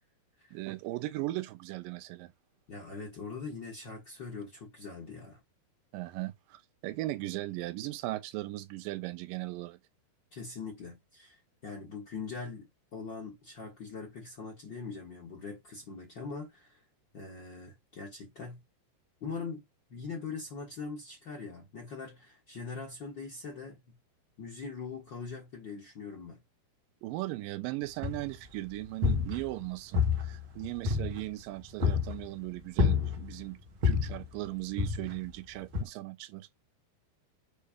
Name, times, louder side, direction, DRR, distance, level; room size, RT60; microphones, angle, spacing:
voice 1, 0.5-2.3 5.9-9.8 27.0-33.6 33.8-36.5, right 18 dB, 80° right, 2.1 m, -38 dB
voice 2, 2.7-5.4 10.3-16.8 17.1-18.6 19.2-23.9 24.4-26.4, left 4 dB, 80° left, 1.0 m, -42 dB
sound 1, 28.0-28.5 28.8-29.6 29.9-31.4 31.8-32.2 32.8-33.4 33.8-34.2 34.8-35.3 35.7-35.8, left 5 dB, 50° right, 1.6 m, -28 dB
8.2 x 2.8 x 5.0 m
omnidirectional pair, 4.7 m